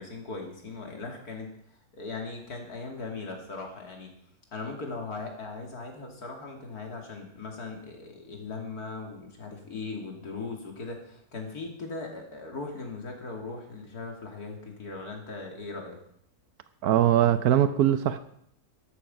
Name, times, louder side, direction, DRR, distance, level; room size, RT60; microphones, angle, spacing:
voice 1, 0.0-4.1 4.5-16.0, left 3 dB, 90° left, 2 dB, 3.2 m, -39 dB
voice 2, 16.8-18.2, right 11 dB, 85° right, 11 dB, 1.2 m, -21 dB
13.0 x 11.5 x 5.3 m, 0.69 s
omnidirectional pair, 1.6 m